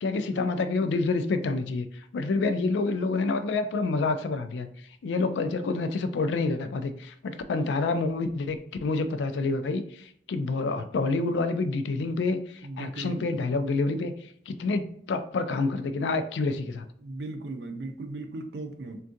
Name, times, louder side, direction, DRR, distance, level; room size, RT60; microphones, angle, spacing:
voice 1, 0.0-1.9 2.1-4.7 5.0-9.8 10.3-12.4 12.8-14.1 14.5-14.8 15.1-16.9, left 3 dB, 90° left, 9 dB, 0.3 m, -27 dB
voice 2, 12.6-13.2 17.0-19.0, right 2 dB, 70° right, 6 dB, 0.5 m, -37 dB
3.5 x 2.3 x 2.6 m, 0.66 s
head